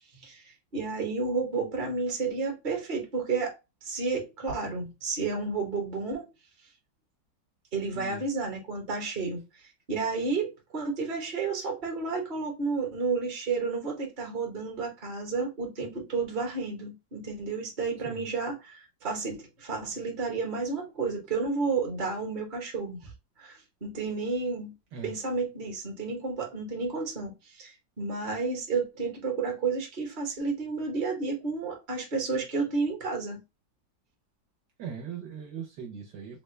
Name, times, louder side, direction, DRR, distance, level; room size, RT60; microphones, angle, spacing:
voice 1, 0.7-3.5 3.8-6.3 7.7-9.4 9.9-23.1 23.4-24.7 25.0-33.4, right 4 dB, 30° right, 1.0 m, -31 dB
voice 2, 7.9-8.2 18.0-18.3 24.9-25.1 34.8-36.4, right 7 dB, 65° right, 1.2 m, -40 dB
3.7 x 2.2 x 3.1 m
omnidirectional pair, 2.0 m